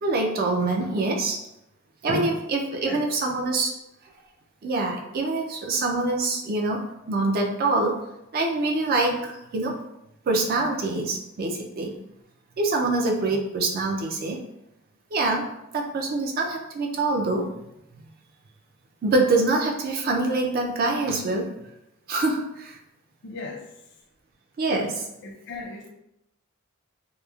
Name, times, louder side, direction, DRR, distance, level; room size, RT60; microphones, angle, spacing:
voice 1, 0.0-1.4 2.0-3.7 4.6-8.0 8.3-9.8 10.3-11.9 12.6-14.4 15.1-15.5 15.7-17.5 19.0-21.5 22.1-22.8 24.6-25.1, right 2 dB, 45° right, 1 dB, 0.4 m, -25 dB
voice 2, 2.8-3.5 13.2-13.4 23.2-23.7 25.2-25.9, left 3 dB, 55° left, 1 dB, 0.4 m, -38 dB
3.0 x 2.0 x 2.3 m, 0.85 s
head